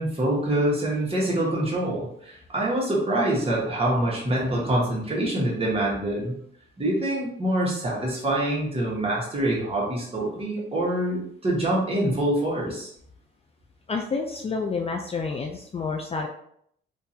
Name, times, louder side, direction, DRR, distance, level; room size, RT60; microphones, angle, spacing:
voice 1, 0.0-6.4 6.8-12.9, right 1 dB, 30° right, -4 dB, 1.5 m, -25 dB
voice 2, 13.9-16.3, left 4 dB, 30° left, 1 dB, 0.4 m, -29 dB
3.7 x 2.6 x 2.8 m, 0.68 s
cardioid pair, 90°, 20 cm